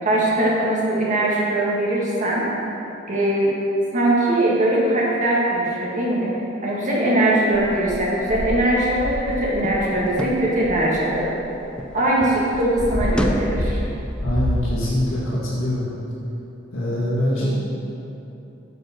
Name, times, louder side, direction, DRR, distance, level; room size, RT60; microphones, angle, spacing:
voice 1, 0.0-2.5 3.1-3.5 3.9-11.3 11.9-13.8 17.4-17.5, right 1 dB, 40° right, -5 dB, 1.7 m, -21 dB
sound 1, 7.5-11.9 12.2-14.7, equal, 5° left, 0.4 m, -27 dB
voice 2, 14.2-15.9 16.7-17.5, left 1 dB, 80° left, -7 dB, 1.7 m, -23 dB
7.9 x 4.4 x 6.1 m, 2.9 s
head